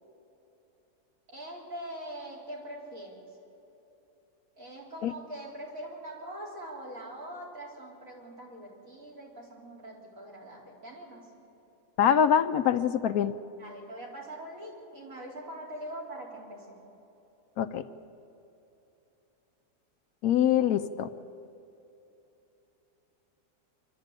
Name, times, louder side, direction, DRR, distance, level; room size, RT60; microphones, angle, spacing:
voice 1, 1.3-3.2 4.6-11.3 13.6-16.8, right 1 dB, 55° right, -2 dB, 4.6 m, -43 dB
voice 2, 12.0-13.3 17.6-17.8 20.2-21.1, left 9 dB, 70° left, 11 dB, 1.0 m, -24 dB
26.0 x 12.0 x 8.9 m, 2.9 s
omnidirectional pair, 1.7 m